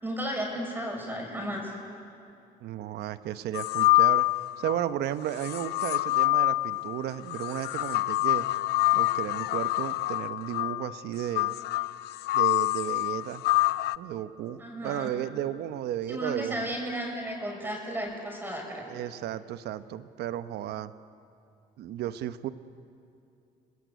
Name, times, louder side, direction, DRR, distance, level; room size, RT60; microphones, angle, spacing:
voice 1, 0.0-1.7 14.6-15.1 16.1-18.9, equal, 10° right, 1 dB, 6.0 m, -34 dB
voice 2, 2.6-4.3 4.6-8.5 8.9-11.6 12.3-13.4 14.0-16.6 18.9-20.9 21.8-22.5, right 11 dB, 75° right, 12 dB, 1.0 m, -34 dB
sound 1, 3.5-4.8 5.4-14.0, left 21 dB, 80° left, 0.5 m, -26 dB
30.0 x 20.0 x 8.2 m, 2.6 s
cardioid pair, 110°, 17 cm